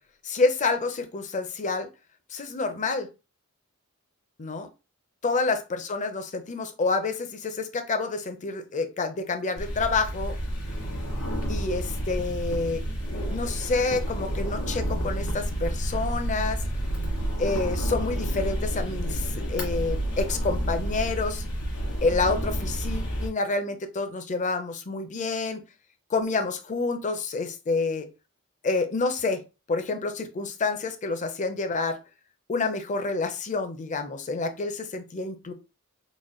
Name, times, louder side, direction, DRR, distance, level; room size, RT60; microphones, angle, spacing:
voice 1, 0.2-1.9 2.3-3.1 4.4-4.7 5.2-10.4 11.5-12.8 13.3-16.6 17.4-21.4 22.0-25.6 26.1-28.1 28.6-29.4 29.7-32.0 32.5-35.5, left 3 dB, 35° left, 8 dB, 0.5 m, -28 dB
sound 1, 9.6-23.3, equal, 75° left, 1.9 m, -30 dB
4.0 x 2.1 x 3.7 m, 0.29 s
head